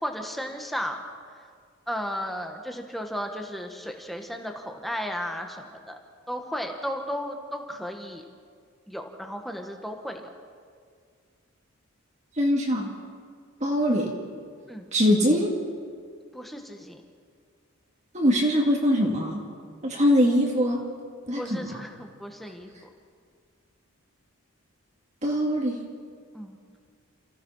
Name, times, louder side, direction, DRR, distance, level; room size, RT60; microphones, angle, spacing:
voice 1, 0.0-1.0 1.9-6.0 6.3-8.2 8.9-10.3 14.7-14.9 16.3-17.0 21.4-22.9 26.3-26.6, equal, ahead, 3 dB, 1.6 m, -34 dB
voice 2, 12.4-12.9 13.6-14.1 14.9-15.6 18.1-19.5 19.8-20.8 21.3-21.8 25.2-25.8, equal, 35° right, -1 dB, 2.3 m, -22 dB
28.5 x 16.0 x 5.8 m, 2.1 s
head